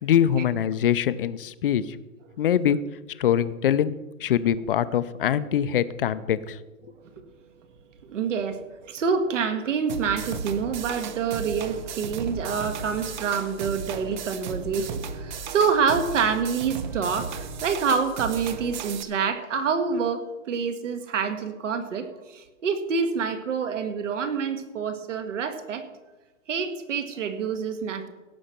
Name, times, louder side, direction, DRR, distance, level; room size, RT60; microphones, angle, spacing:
voice 1, 0.0-1.8 2.4-2.8 3.2-3.9 4.2-6.6, left 10 dB, 45° left, 14 dB, 0.6 m, -23 dB
voice 2, 7.0-7.4 7.7-25.8 26.5-28.1, right 6 dB, 65° right, 8 dB, 1.8 m, -27 dB
sound 1, 9.9-19.0, right 5 dB, 35° right, 0.7 m, -35 dB
16.5 x 6.5 x 5.8 m, 1.1 s
hypercardioid pair, 160°, 40 cm